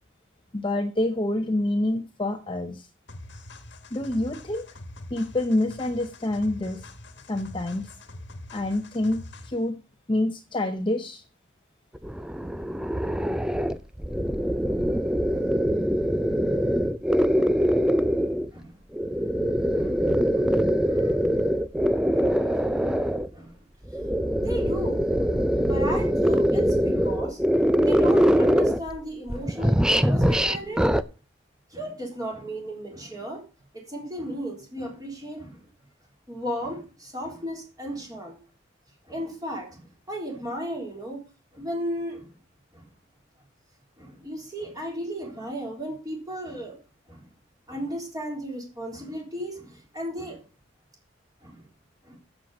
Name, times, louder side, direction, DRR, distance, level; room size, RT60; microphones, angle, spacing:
voice 1, 0.5-2.9 3.9-4.6 5.1-6.9 7.3-7.9 8.5-9.8 10.1-11.2, left 1 dB, 25° left, 6 dB, 0.8 m, -27 dB
sound 1, 3.1-9.7, left 1 dB, 60° left, 1.5 m, -44 dB
sound 2, 11.9-18.5 18.9-23.3 23.9-29.0 29.3-31.0, equal, 5° right, 0.4 m, -23 dB
voice 2, 17.3-17.6 17.9-18.2 18.5-18.8 19.7-20.1 20.3-20.6 20.9-21.2 22.1-22.3 22.7-23.6 24.3-30.9 31.7-33.4 33.7-35.7 36.3-38.4 39.1-41.2 41.5-42.3 42.7-42.9 44.0-46.8 47.1-47.3 47.7-50.4 51.4-51.6 52.0-52.2, equal, 20° right, 0 dB, 3.9 m, -35 dB
7.6 x 7.5 x 7.1 m, 0.33 s
head